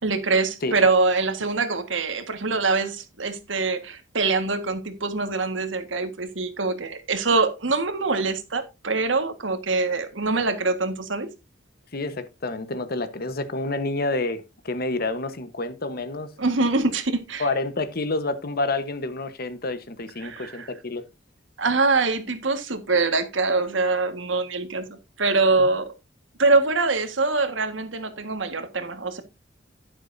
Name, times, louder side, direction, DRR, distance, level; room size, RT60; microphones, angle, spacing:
voice 1, 0.0-11.3 16.4-17.5 20.2-20.7 21.6-25.9 26.4-29.2, right 3 dB, 85° right, 1.7 m, -24 dB
voice 2, 11.9-16.3 17.4-21.0 25.6-25.7, left 2 dB, 55° left, 1.1 m, -28 dB
11.0 x 10.5 x 2.7 m
head